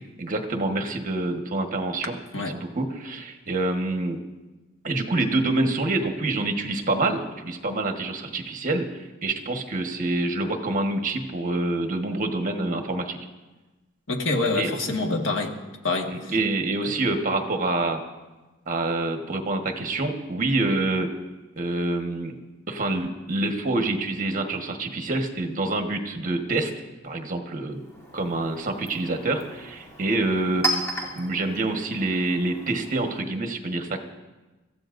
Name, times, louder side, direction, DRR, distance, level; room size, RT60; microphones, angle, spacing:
voice 1, 0.2-2.2 2.5-4.2 4.8-13.2 14.5-14.7 16.1-18.0 18.7-21.1 21.6-22.4 22.7-26.7 27.0-27.8 28.1-30.8 31.1-34.0, right 2 dB, 40° right, 4 dB, 1.4 m, -26 dB
voice 2, 14.1-15.6 15.8-16.3, left 3 dB, 65° left, 2 dB, 1.6 m, -26 dB
Chink clink, 27.7-33.2, right 1 dB, 15° left, 2.9 m, -35 dB
25.5 x 15.0 x 2.6 m, 1.2 s
head